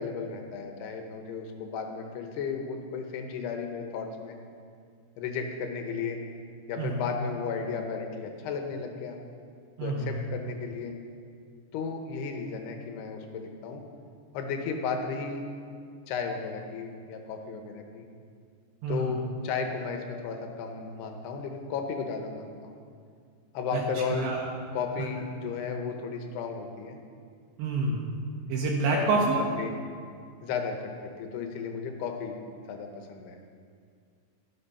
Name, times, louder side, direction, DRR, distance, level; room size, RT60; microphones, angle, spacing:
voice 1, 0.0-4.4 5.2-6.2 6.7-9.2 9.8-10.9 11.7-13.8 14.3-15.4 16.1-18.1 18.9-22.8 23.5-24.3 24.7-27.0 28.9-29.8 30.4-30.8 31.0-32.4 32.7-33.4, left 5 dB, 75° left, 4 dB, 2.8 m, -34 dB
voice 2, 9.8-10.2 18.8-19.1 23.7-23.8 24.1-24.5 27.6-28.1 28.5-29.4, right 3 dB, 75° right, -2 dB, 3.2 m, -27 dB
13.0 x 10.0 x 5.6 m, 2.2 s
omnidirectional pair, 5.4 m